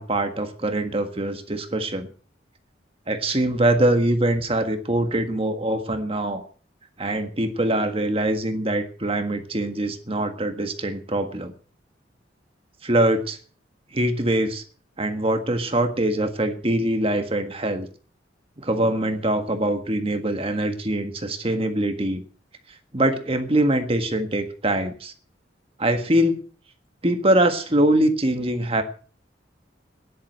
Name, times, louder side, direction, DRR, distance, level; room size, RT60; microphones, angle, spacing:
voice 1, 0.0-2.1 3.1-6.4 7.0-11.5 12.8-13.4 13.9-14.6 15.0-17.9 18.6-22.2 22.9-25.1 25.8-26.4 27.0-28.8, right 1 dB, 30° right, 7 dB, 1.6 m, -23 dB
12.5 x 11.0 x 6.3 m, 0.41 s
head